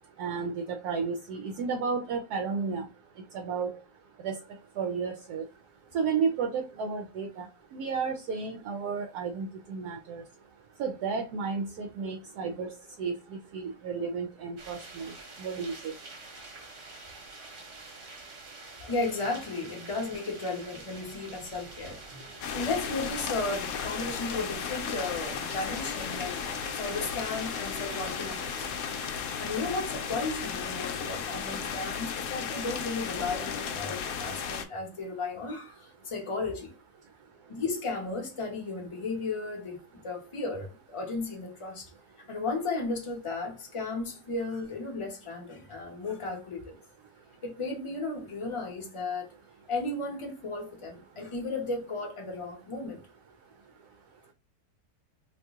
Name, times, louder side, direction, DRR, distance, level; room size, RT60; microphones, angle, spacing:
voice 1, 0.2-2.9 3.3-3.7 4.2-4.4 4.8-5.4 5.9-7.5 7.7-10.2 10.8-12.7 13.0-15.9, right 5 dB, 70° right, 1.0 m, -32 dB
sound 1, 14.6-29.1, right 3 dB, 50° right, 1.2 m, -47 dB
voice 2, 18.8-26.4 26.7-28.5 29.4-36.7 37.5-41.9 42.3-46.8 47.4-49.3 49.7-53.0, left 3 dB, 25° left, 0.7 m, -34 dB
sound 2, 22.4-34.7, left 7 dB, 70° left, 0.9 m, -35 dB
2.9 x 2.7 x 3.5 m
omnidirectional pair, 1.8 m